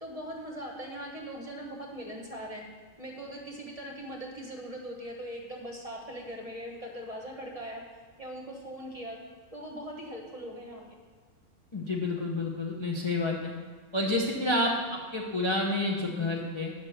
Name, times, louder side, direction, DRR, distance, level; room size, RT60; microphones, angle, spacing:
voice 1, 0.0-2.6 3.0-7.8 8.2-9.2 9.5-10.8 14.2-14.3, equal, 30° right, -1 dB, 1.2 m, -40 dB
voice 2, 11.7-13.5 13.9-16.7, left 2 dB, 25° left, -2 dB, 0.8 m, -29 dB
8.3 x 5.9 x 6.6 m, 1.4 s
omnidirectional pair, 1.4 m